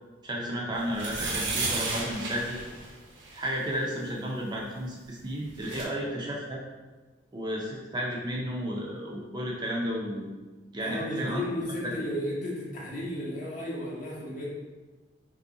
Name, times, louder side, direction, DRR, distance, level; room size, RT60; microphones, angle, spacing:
voice 1, 0.2-2.6 3.3-6.6 7.3-10.3 10.7-11.4 11.8-11.9, equal, 25° right, -3 dB, 0.4 m, -33 dB
sound 1, 0.9-3.5 5.2-5.3 5.5-5.8, right 3 dB, 70° right, 0.6 m, -33 dB
voice 2, 10.8-14.5, left 1 dB, 45° left, -5 dB, 0.8 m, -34 dB
2.7 x 2.6 x 3.6 m, 1.3 s
head